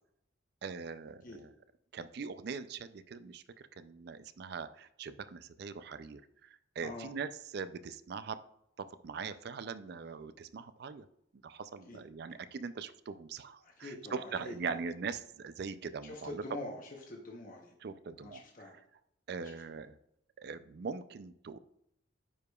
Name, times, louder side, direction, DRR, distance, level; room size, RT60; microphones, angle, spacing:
voice 1, 0.6-1.5 1.9-8.4 8.8-11.1 11.4-16.4 17.8-18.7 19.3-20.0 20.4-21.6, right 5 dB, 55° right, 13 dB, 0.4 m, -42 dB
voice 2, 13.6-14.8 16.0-16.8 17.1-17.7 18.2-18.8, left 2 dB, 45° left, 0 dB, 0.9 m, -45 dB
9.8 x 4.8 x 2.3 m, 0.75 s
head